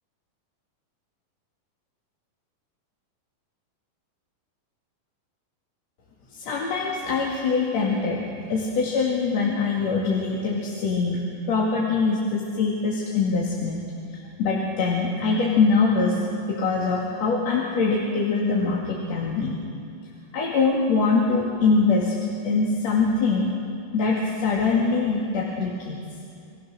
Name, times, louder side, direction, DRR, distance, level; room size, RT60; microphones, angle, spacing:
voice 1, 6.3-8.2 8.5-13.8 14.4-16.2 16.5-19.5 20.3-22.1 22.4-23.5 23.9-26.0, left 4 dB, 50° left, -4 dB, 3.2 m, -23 dB
27.0 x 23.0 x 6.4 m, 2.4 s
omnidirectional pair, 4.2 m